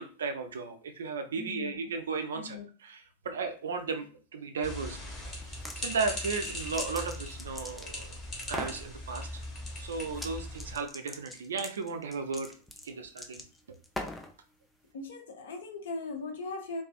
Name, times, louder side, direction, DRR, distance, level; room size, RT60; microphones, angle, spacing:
voice 1, 0.0-5.0 5.2-8.1 8.5-9.4 9.8-12.5 12.8-13.4 14.0-14.1, right 4 dB, 65° right, 7 dB, 0.4 m, -35 dB
voice 2, 1.4-1.9 2.4-2.7 14.9-16.8, left 3 dB, 60° left, 5 dB, 0.5 m, -39 dB
sound 1, 4.6-10.7, left 1 dB, 25° left, 0.9 m, -40 dB
sound 2, 5.4-5.8 6.2-8.1 8.4-8.8 10.1-10.3 10.6-14.3, left 1 dB, 5° left, 0.4 m, -41 dB
2.4 x 2.3 x 2.3 m, 0.39 s
figure-of-eight pair, 90°, 0 cm